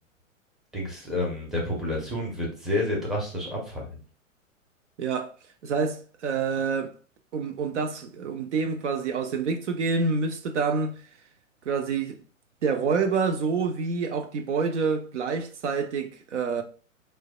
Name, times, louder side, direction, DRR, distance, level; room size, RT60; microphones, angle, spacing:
voice 1, 0.7-4.0, left 1 dB, ahead, 0.6 m, -29 dB
voice 2, 5.0-5.3 5.6-6.9 7.3-11.0 11.7-12.2 12.6-16.6, right 5 dB, 60° right, 0.6 m, -27 dB
4.6 x 2.1 x 2.2 m
figure-of-eight pair, 110°, 40 cm